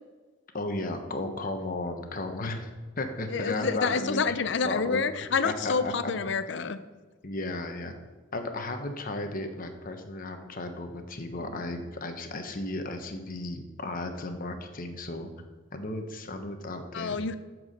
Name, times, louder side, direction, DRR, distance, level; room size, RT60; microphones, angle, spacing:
voice 1, 0.5-2.7 3.0-4.2 4.6-5.1 5.4-6.1 7.2-8.0 8.3-15.3 15.7-17.2, left 2 dB, 45° left, 6 dB, 1.0 m, -34 dB
voice 2, 3.3-6.8 16.9-17.3, left 5 dB, 65° left, 12 dB, 0.5 m, -28 dB
8.9 x 4.7 x 6.6 m, 1.3 s
head